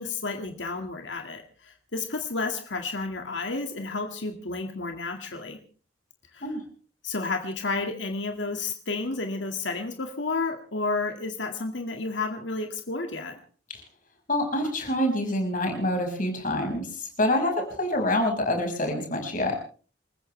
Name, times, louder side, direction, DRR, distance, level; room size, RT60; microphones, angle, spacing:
voice 1, 0.0-5.6 6.3-6.4 7.0-13.4, left 3 dB, 80° left, 5 dB, 2.0 m, -31 dB
voice 2, 14.3-19.6, left 1 dB, 45° left, 3 dB, 5.5 m, -26 dB
29.0 x 14.5 x 3.3 m, 0.39 s
head